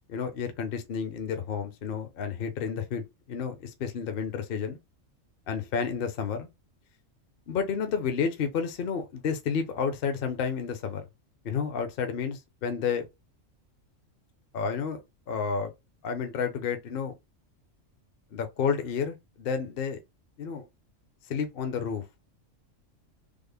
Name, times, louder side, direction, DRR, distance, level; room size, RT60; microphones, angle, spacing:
voice 1, 0.1-4.8 5.5-6.5 7.5-11.0 11.4-13.0 14.5-15.0 15.3-15.7 16.0-17.2 18.3-20.0 20.4-20.7 21.3-22.0, left 6 dB, 55° left, 0.8 m, -31 dB
3.5 x 2.0 x 3.3 m
omnidirectional pair, 1.4 m